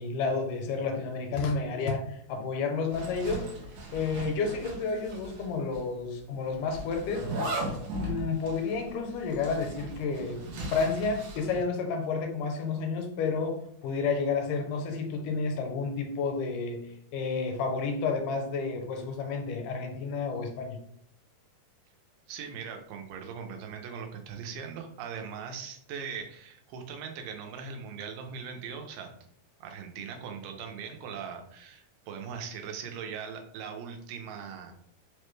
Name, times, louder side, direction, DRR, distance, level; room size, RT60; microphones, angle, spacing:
voice 1, 0.0-3.5 3.9-16.8 17.1-20.8, left 4 dB, 80° left, 3 dB, 2.1 m, -31 dB
Zipper (clothing), 2.9-5.5 5.7-5.8 6.7-11.6, right 1 dB, 70° right, 1.6 m, -37 dB
voice 2, 22.3-29.1 29.6-34.7, right 6 dB, 90° right, 4 dB, 2.2 m, -40 dB
5.1 x 2.1 x 3.1 m, 0.68 s
omnidirectional pair, 3.8 m